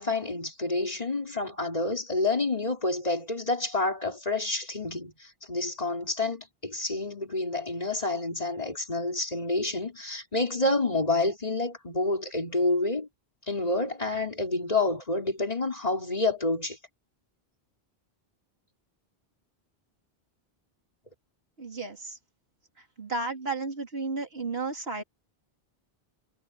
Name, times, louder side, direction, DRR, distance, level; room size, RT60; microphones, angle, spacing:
voice 1, 0.0-13.1 13.5-16.8, left 2 dB, 40° left, 4.2 m, -28 dB
voice 2, 21.6-22.2 23.0-25.0, right 3 dB, 75° right, 3.4 m, -33 dB
omnidirectional pair, 1.0 m